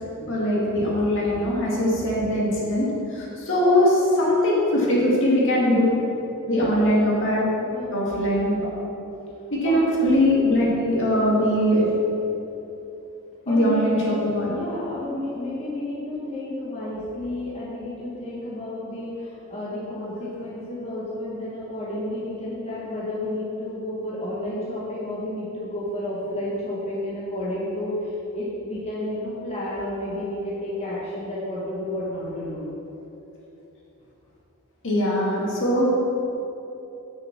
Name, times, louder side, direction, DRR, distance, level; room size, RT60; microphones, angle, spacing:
voice 1, 0.2-5.9 6.5-7.4 7.9-8.7 9.5-11.9 13.5-14.5 34.8-35.8, left 1 dB, 60° left, -5 dB, 2.2 m, -21 dB
voice 2, 6.4-6.8 7.6-8.1 8.9-9.0 9.6-9.8 13.5-14.2 14.4-32.7, left 1 dB, 30° left, -8 dB, 1.6 m, -31 dB
7.1 x 6.8 x 6.0 m, 3.0 s
head